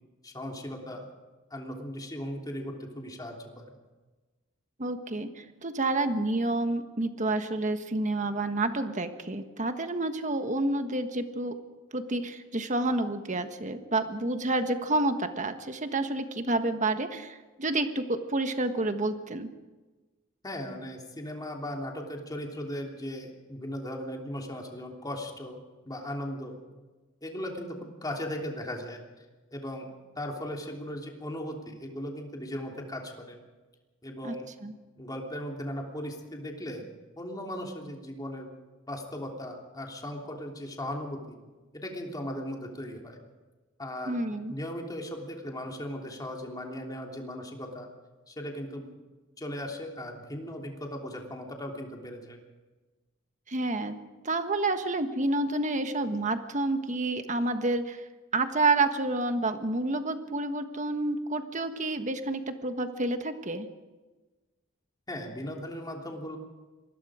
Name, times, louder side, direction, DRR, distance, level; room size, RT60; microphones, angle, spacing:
voice 1, 0.2-1.1 1.5-3.7 20.4-25.6 25.9-26.6 27.2-29.0 29.5-33.4 34.0-34.5 35.0-36.8 37.2-38.5 38.9-41.4 41.7-43.2 43.8-44.2 44.5-47.9 48.3-48.9 49.4-52.4 65.1-66.4, equal, 20° left, 1 dB, 3.2 m, -37 dB
voice 2, 4.8-11.5 11.9-19.5 34.2-34.3 34.6-34.7 44.1-44.5 53.5-53.9 54.2-58.0 58.3-63.7, right 2 dB, 40° right, 8 dB, 1.4 m, -29 dB
25.5 x 20.5 x 5.0 m, 1.3 s
head